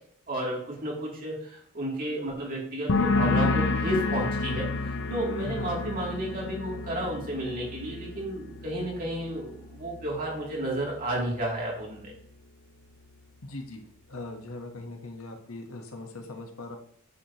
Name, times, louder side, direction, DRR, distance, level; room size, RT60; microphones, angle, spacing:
voice 1, 0.3-12.1, right 1 dB, 45° right, -3 dB, 2.8 m, -32 dB
sound 1, 2.9-10.3 10.6-11.2, left 3 dB, 65° left, 0.7 m, -30 dB
voice 2, 5.4-5.9 13.4-13.8 14.1-16.8, left 2 dB, 90° left, 4 dB, 1.2 m, -40 dB
9.5 x 6.4 x 2.9 m, 0.67 s
head